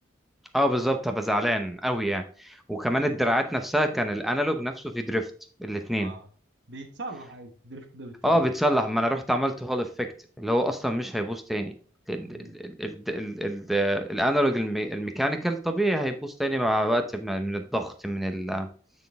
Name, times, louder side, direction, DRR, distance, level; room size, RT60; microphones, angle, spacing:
voice 1, 0.5-5.3 5.6-6.1 8.2-11.7 12.1-18.7, equal, ahead, 6 dB, 0.7 m, -26 dB
voice 2, 2.9-3.2 6.0-6.3 6.7-8.5 12.3-12.5, right 2 dB, 60° right, 5 dB, 1.2 m, -41 dB
9.0 x 4.1 x 3.5 m, 0.41 s
head